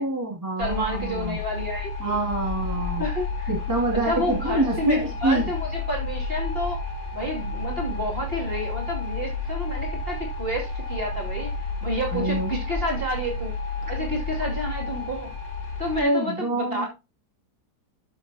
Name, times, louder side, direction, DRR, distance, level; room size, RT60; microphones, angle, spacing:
voice 1, 0.0-1.4 2.0-3.0 3.5-5.5 12.1-12.6 16.0-16.9, right 1 dB, 10° right, 0 dB, 2.4 m, -26 dB
sound 1, 0.6-16.0, left 3 dB, 60° left, 4.9 m, -31 dB
voice 2, 0.6-2.2 3.0-3.5 4.1-6.8 7.1-11.5 11.8-13.5 13.9-15.3 15.8-16.9, equal, 35° right, -1 dB, 2.8 m, -30 dB
12.5 x 7.1 x 2.8 m, 0.27 s
omnidirectional pair, 1.8 m